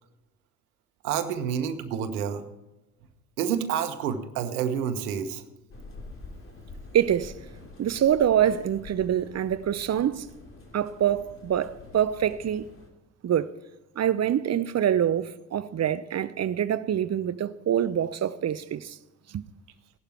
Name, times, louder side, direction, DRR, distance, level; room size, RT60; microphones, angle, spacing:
voice 1, 1.0-2.4 3.4-5.4, right 8 dB, 80° right, 1.3 m, -28 dB
sound 1, 5.7-12.9, left 2 dB, 30° left, 3.2 m, -46 dB
voice 2, 6.9-7.3 7.8-10.3 10.7-12.7 13.2-13.5 14.0-19.0 19.3-19.4, right 10 dB, 35° right, 0.8 m, -25 dB
16.5 x 11.5 x 4.5 m
figure-of-eight pair, 50°, 45 cm